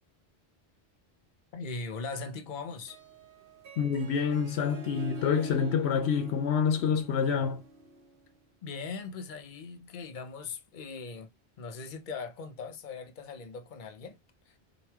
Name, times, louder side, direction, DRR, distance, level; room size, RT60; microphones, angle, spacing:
voice 1, 1.5-3.0 8.6-14.2 14.5-14.6, left 4 dB, 55° left, 0.8 m, -40 dB
Harp, 2.7-8.3, equal, 60° right, 0.9 m, -45 dB
voice 2, 3.8-7.6, left 6 dB, 80° left, 0.8 m, -27 dB
4.1 x 3.0 x 2.2 m
omnidirectional pair, 1.1 m